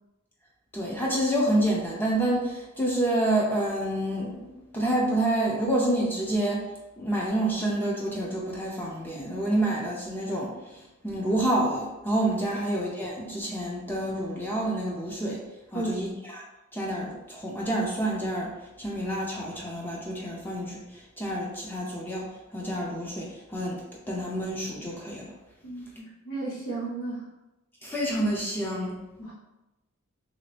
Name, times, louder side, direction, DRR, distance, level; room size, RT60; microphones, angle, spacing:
voice 1, 0.7-4.5 4.7-6.6 7.0-15.4 15.7-16.4 16.7-18.5 18.8-20.8 21.2-22.3 22.5-23.8 24.1-25.3 27.8-29.0, right 1 dB, 10° left, -3 dB, 0.5 m, -28 dB
voice 2, 15.7-16.1 25.6-27.3 29.2-29.3, right 2 dB, 85° left, -6 dB, 1.3 m, -34 dB
3.3 x 2.7 x 3.3 m, 0.98 s
head